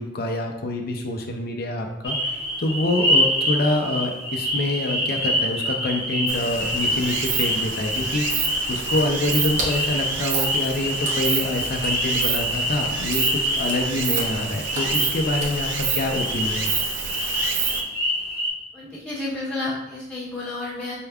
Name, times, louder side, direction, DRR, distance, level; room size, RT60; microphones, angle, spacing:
voice 1, 0.0-2.2 2.6-16.7, left 2 dB, 55° left, 3 dB, 0.5 m, -26 dB
sound 1, 2.0-18.5, equal, 15° right, 1.0 m, -26 dB
Stream, 6.3-17.8, right 7 dB, 75° right, 0.4 m, -29 dB
Water / Splash splatter, 8.9-16.1, right 1 dB, 40° right, 0.7 m, -36 dB
voice 2, 18.7-20.9, left 2 dB, 10° left, -9 dB, 1.2 m, -31 dB
4.4 x 3.4 x 2.2 m, 0.93 s
head